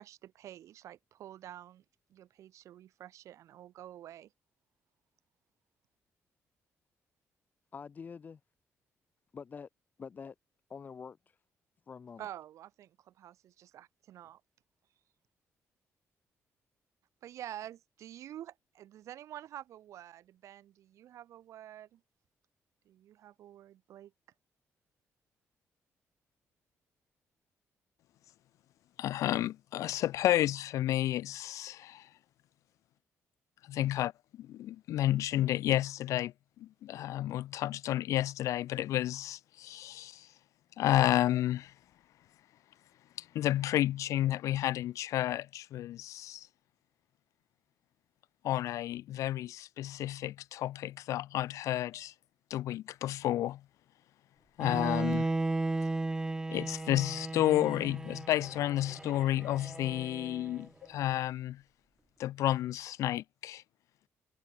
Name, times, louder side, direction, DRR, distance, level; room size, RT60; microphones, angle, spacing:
voice 1, 0.0-1.8 2.1-4.3 12.2-14.4 17.2-22.0 22.8-24.1, right 12 dB, 75° right, 2.5 m, -48 dB
voice 2, 7.7-8.4 9.3-9.7 10.0-10.3 10.7-11.2 11.9-12.3, left 6 dB, 35° left, 6.6 m, -45 dB
voice 3, 29.0-32.1 33.7-34.1 34.4-36.3 36.6-40.3 40.8-41.7 43.2-46.5 48.4-52.1 52.5-53.6 54.6-55.3 56.5-61.6 62.2-63.6, left 13 dB, 90° left, 0.7 m, -31 dB
Bowed string instrument, 54.6-60.6, right 2 dB, 10° right, 1.4 m, -35 dB
cardioid pair, 155°, 5 cm